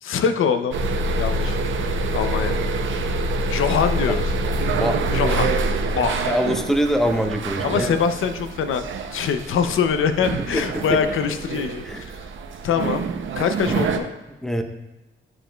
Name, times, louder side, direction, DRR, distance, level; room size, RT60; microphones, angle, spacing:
voice 1, 0.0-0.8 1.2-1.6 2.1-2.6 3.5-4.3 5.1-5.6 5.9-6.3 7.6-8.8 9.1-12.1 12.6-13.1 13.4-14.1, left 7 dB, 80° left, 9 dB, 0.5 m, -23 dB
sound 1, 0.7-14.0, right 2 dB, 70° right, 0.6 m, -26 dB
voice 2, 4.7-5.3 6.3-7.9 10.7-11.0 11.8-12.0 13.7-13.8 14.4-14.6, equal, ahead, 5 dB, 0.7 m, -24 dB
11.0 x 4.9 x 2.2 m, 1.0 s
cardioid pair, 85°, 21 cm